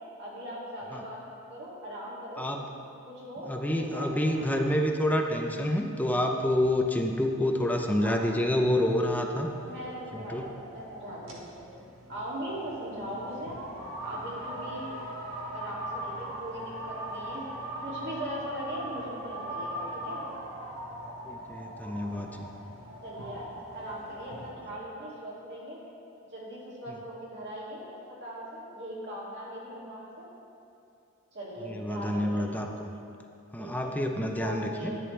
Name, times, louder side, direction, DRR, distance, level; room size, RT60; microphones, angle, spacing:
voice 1, 0.2-2.5 3.1-4.5 8.0-8.2 9.7-11.6 12.1-13.6 14.0-14.9 15.5-17.5 17.8-20.2 23.0-25.8 26.3-27.9 28.2-30.3 31.3-32.5 33.6-33.9 34.4-35.0, equal, 55° right, -6 dB, 2.5 m, -40 dB
voice 2, 3.5-9.5 10.1-10.4 21.3-22.3 26.9-27.0 31.6-32.9 33.5-34.9, left 1 dB, 10° left, 2 dB, 0.6 m, -28 dB
sound 1, 9.3-24.5, right 1 dB, 70° right, 1.3 m, -40 dB
11.0 x 9.5 x 3.3 m, 2.7 s
head